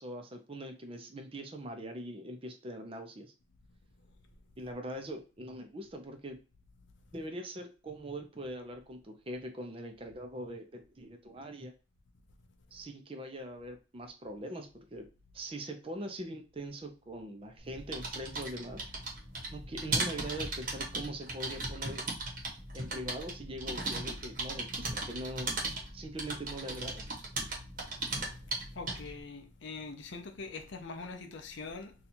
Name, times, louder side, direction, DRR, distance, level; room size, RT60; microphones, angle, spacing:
voice 1, 0.0-3.3 4.6-6.4 7.1-11.7 12.7-15.1 15.3-18.9 19.5-22.0 22.7-25.5 25.9-27.0, right 1 dB, 25° right, 0.5 m, -42 dB
sound 1, 17.6-29.2, right 2 dB, 40° right, 0.9 m, -37 dB
voice 2, 28.7-31.9, left 4 dB, 60° left, 0.6 m, -43 dB
2.8 x 2.4 x 4.1 m
head